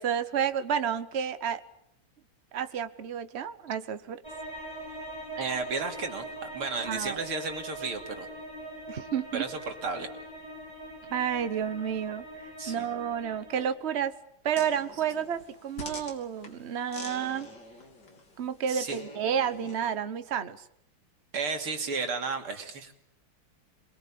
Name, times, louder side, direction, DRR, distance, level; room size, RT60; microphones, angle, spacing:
voice 1, 0.0-1.6 2.5-4.2 6.9-7.2 8.9-9.4 11.1-14.2 14.4-17.5 18.4-20.7, right 8 dB, 40° right, 12 dB, 1.1 m, -31 dB
sound 1, 4.2-13.7, right 1 dB, 10° right, 4.8 m, -42 dB
voice 2, 5.4-8.3 9.3-10.1 12.6-12.9 18.7-19.0 21.3-22.9, right 4 dB, 80° right, 5 dB, 3.6 m, -33 dB
sound 2, 14.5-19.9, left 2 dB, 50° left, 3.8 m, -46 dB
27.5 x 21.5 x 8.7 m, 0.73 s
omnidirectional pair, 2.4 m